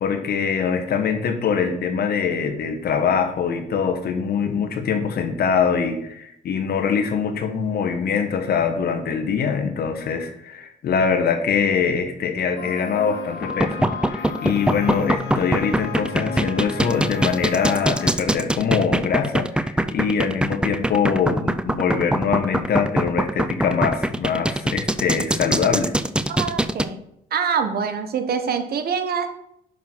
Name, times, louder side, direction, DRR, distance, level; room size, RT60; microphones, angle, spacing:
voice 1, 0.0-25.9, left 6 dB, 65° left, 7 dB, 1.2 m, -23 dB
sound 1, 12.6-18.1, left 5 dB, 90° left, 1.6 m, -33 dB
sound 2, 13.4-26.9, right 1 dB, 5° right, 0.4 m, -22 dB
voice 2, 26.3-27.0 27.3-29.3, right 6 dB, 65° right, 8 dB, 1.1 m, -25 dB
6.0 x 5.2 x 6.1 m, 0.76 s
cardioid pair, 75°, 17 cm